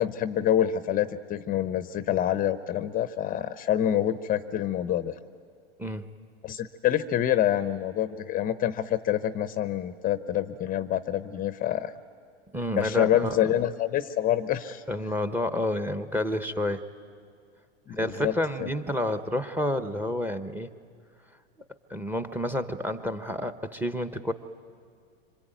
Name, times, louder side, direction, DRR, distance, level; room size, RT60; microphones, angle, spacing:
voice 1, 0.0-5.1 6.4-11.9 12.8-14.8 17.9-18.7, left 11 dB, 25° left, 12 dB, 0.7 m, -27 dB
voice 2, 5.8-6.1 12.5-13.5 14.9-16.8 18.0-20.7 21.9-24.3, left 1 dB, 5° right, 10 dB, 1.0 m, -29 dB
26.0 x 25.0 x 9.2 m, 2.1 s
hypercardioid pair, 115°, 31 cm